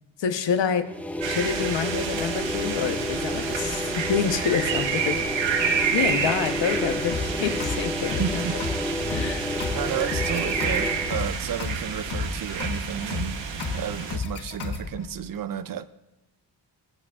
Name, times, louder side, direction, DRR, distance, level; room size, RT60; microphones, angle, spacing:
voice 1, 0.2-0.9 1.3-8.4 9.1-9.5, left 7 dB, 85° left, 8 dB, 1.0 m, -28 dB
sound 1, 0.8-11.3, left 1 dB, 5° left, 0.6 m, -31 dB
sound 2, 1.2-14.2, right 6 dB, 85° right, 1.1 m, -29 dB
sound 3, 7.1-15.1, left 4 dB, 60° left, 1.3 m, -33 dB
voice 2, 8.2-8.6 9.7-13.4 13.7-15.9, right 9 dB, 50° right, 14 dB, 0.5 m, -32 dB
21.0 x 8.6 x 2.4 m, 1.0 s
wide cardioid pair, 135°, 43 cm